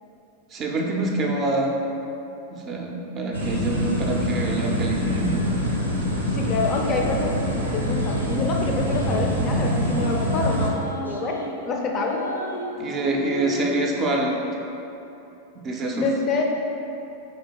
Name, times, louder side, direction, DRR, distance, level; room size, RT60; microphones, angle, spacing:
voice 1, 0.5-1.7 2.5-5.4 12.8-14.4 15.6-16.1, right 2 dB, 30° right, 0 dB, 0.5 m, -26 dB
sound 1, 3.3-10.7, equal, 80° right, 0.7 m, -25 dB
voice 2, 6.3-10.8 11.0-12.2 15.9-16.4, left 3 dB, 35° left, 1 dB, 0.5 m, -27 dB
sound 2, 8.1-9.4 9.8-11.5 11.9-13.9, equal, 90° left, 0.4 m, -34 dB
3.8 x 3.3 x 3.8 m, 2.9 s
figure-of-eight pair, 90°, 0 cm